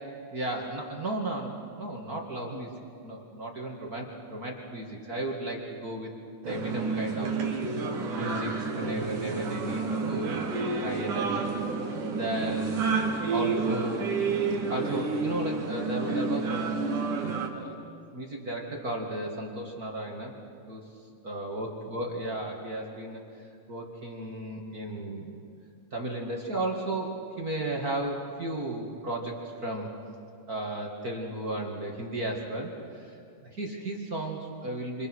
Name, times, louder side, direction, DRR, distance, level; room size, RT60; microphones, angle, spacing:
voice 1, 0.3-2.7 3.0-6.1 6.4-7.3 7.7-7.8 8.1-10.4 10.7-13.0 13.3-14.1 14.7-17.2 17.5-17.8 18.1-20.4 20.7-20.8 21.2-23.2 23.7-25.4 25.9-29.9 30.5-35.1, right 1 dB, 30° right, 0 dB, 2.3 m, -34 dB
sound 1, 6.4-17.5, right 4 dB, 80° right, 3.7 m, -30 dB
28.0 x 27.0 x 6.3 m, 2.4 s
omnidirectional pair, 3.6 m